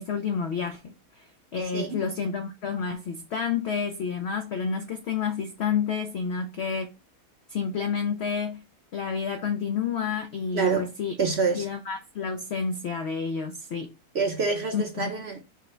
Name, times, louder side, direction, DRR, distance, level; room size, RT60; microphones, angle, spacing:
voice 1, 0.0-6.9 7.5-8.6 8.9-11.2 11.5-13.9 14.7-15.1, left 6 dB, 75° left, 0.6 m, -30 dB
voice 2, 10.5-10.9 11.2-11.7 14.1-15.4, right 4 dB, 55° right, 0.8 m, -26 dB
5.6 x 2.1 x 4.3 m
omnidirectional pair, 1.7 m